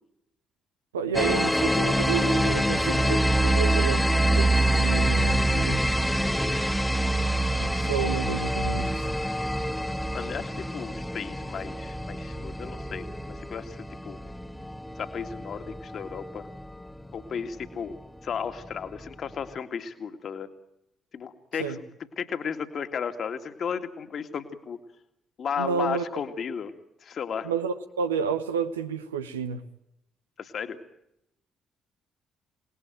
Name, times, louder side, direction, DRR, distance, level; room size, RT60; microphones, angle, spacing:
voice 1, 0.9-5.8 7.6-9.1 21.6-21.8 25.6-26.2 27.4-29.6, right 6 dB, 80° right, 1.1 m, -30 dB
sound 1, 1.1-16.6, right 1 dB, 5° left, 1.4 m, -25 dB
voice 2, 6.2-6.6 10.1-14.2 15.0-16.5 17.1-17.9 18.2-20.5 21.1-21.8 22.2-24.8 25.4-26.7 27.0-27.5 30.4-30.8, left 7 dB, 50° left, 2.2 m, -34 dB
27.0 x 19.5 x 9.2 m
figure-of-eight pair, 40°, 0 cm